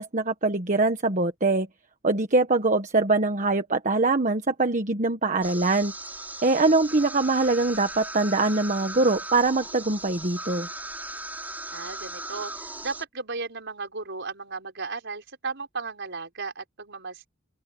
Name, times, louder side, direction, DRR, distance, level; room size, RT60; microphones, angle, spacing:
voice 1, 0.0-1.7 2.0-5.9 6.4-10.7, right 3 dB, 40° right, 1.3 m, -23 dB
sound 1, 5.4-13.0, right 2 dB, 10° right, 4.1 m, -38 dB
voice 2, 11.7-17.3, right 4 dB, 60° right, 5.3 m, -35 dB
open air
head